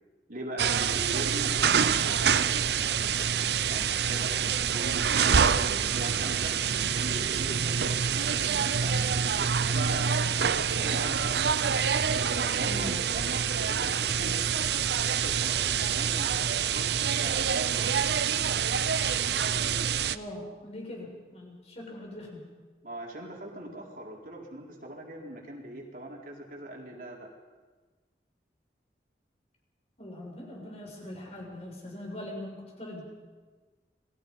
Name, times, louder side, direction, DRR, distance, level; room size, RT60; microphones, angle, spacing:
voice 1, 0.3-3.3 3.7-6.5 6.9-11.8 12.3-14.4 15.0-18.0 22.8-27.3, right 1 dB, 50° right, -1 dB, 4.0 m, -41 dB
sound 1, 0.6-20.2, right 7 dB, 75° right, 0.7 m, -26 dB
voice 2, 12.6-13.0 19.6-22.4 30.0-33.0, left 1 dB, 35° left, -1 dB, 6.7 m, -41 dB
29.5 x 21.5 x 5.5 m, 1.3 s
head